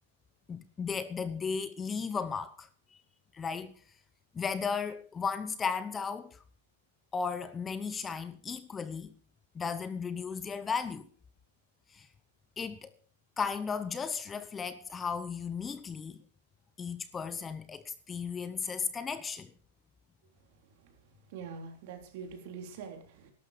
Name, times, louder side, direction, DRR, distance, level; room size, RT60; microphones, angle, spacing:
voice 1, 0.5-3.0 3.3-3.8 4.3-6.4 7.1-9.1 9.5-11.1 11.9-12.1 12.6-12.9 13.4-16.2 16.8-19.5, left 5 dB, 15° left, 0.8 m, -35 dB
voice 2, 21.3-23.3, right 6 dB, 55° right, 3.6 m, -44 dB
14.5 x 12.0 x 5.1 m
hypercardioid pair, 135°, 0 cm